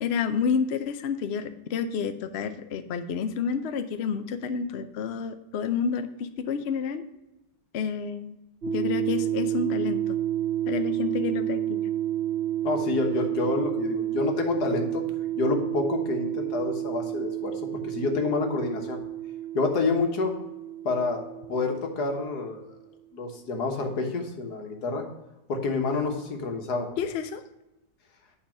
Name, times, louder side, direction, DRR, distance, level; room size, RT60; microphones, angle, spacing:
voice 1, 0.0-7.0 7.7-8.3 8.7-10.2 10.7-11.8 27.0-27.4, left 6 dB, 85° left, 9 dB, 0.5 m, -29 dB
sound 1, 8.6-22.6, right 11 dB, 65° right, 0.5 m, -30 dB
voice 2, 12.6-15.0 15.4-19.0 19.6-20.3 20.8-21.2 21.5-22.7 23.1-25.1 25.5-26.9, left 3 dB, 65° left, 3 dB, 1.7 m, -28 dB
8.8 x 4.0 x 5.8 m, 0.98 s
omnidirectional pair, 1.9 m